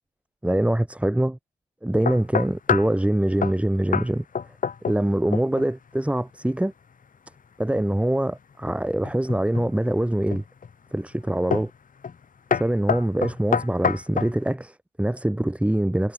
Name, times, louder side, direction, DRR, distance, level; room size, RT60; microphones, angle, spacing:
voice 1, 0.4-1.4 1.8-4.2 4.9-6.7 7.6-10.4 10.9-11.7 12.5-16.1, right 1 dB, 5° right, 2.5 m, -24 dB
sound 1, 2.1-3.0 3.4-3.6 3.9-4.1 4.3-5.1 5.3-5.7 9.0-9.7 10.3-10.7 11.5-11.8 12.0-12.2 12.5-14.4, left 6 dB, 40° left, 3.3 m, -26 dB
cardioid pair, 90°, 20 cm